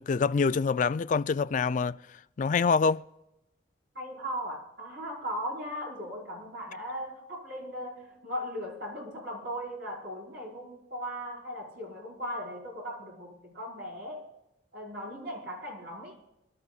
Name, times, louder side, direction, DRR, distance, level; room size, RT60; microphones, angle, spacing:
voice 1, 0.0-2.0 2.4-3.0, left 5 dB, 45° left, 0.3 m, -25 dB
voice 2, 3.9-14.3 14.7-16.1, equal, 65° right, 5.4 m, -38 dB
25.5 x 12.5 x 2.4 m
head